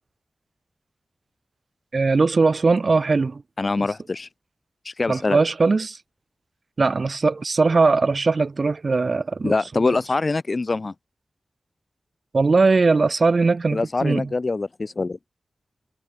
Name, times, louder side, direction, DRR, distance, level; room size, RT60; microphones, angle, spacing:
voice 1, 1.9-3.4 3.8-3.9 5.1-6.0 6.8-9.5 9.8-10.0 12.3-14.3, right 4 dB, 50° right, 4.1 m, -20 dB
voice 2, 3.6-4.3 4.8-5.4 9.4-10.9 13.7-15.2, left 3 dB, 40° left, 4.7 m, -24 dB
wide cardioid pair, 120°, 0 cm